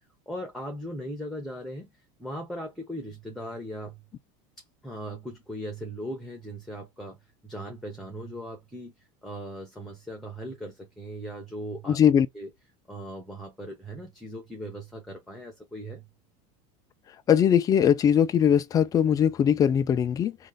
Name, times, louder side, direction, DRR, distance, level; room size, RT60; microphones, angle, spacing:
voice 1, 0.3-1.9 2.2-4.0 4.8-7.2 7.4-8.9 9.2-12.0 12.3-12.5 12.9-16.0, equal, ahead, 0.9 m, -38 dB
voice 2, 11.9-12.3 17.3-20.4, left 8 dB, 20° left, 0.4 m, -21 dB
3.1 x 2.4 x 3.9 m
supercardioid pair, 145°, 17 cm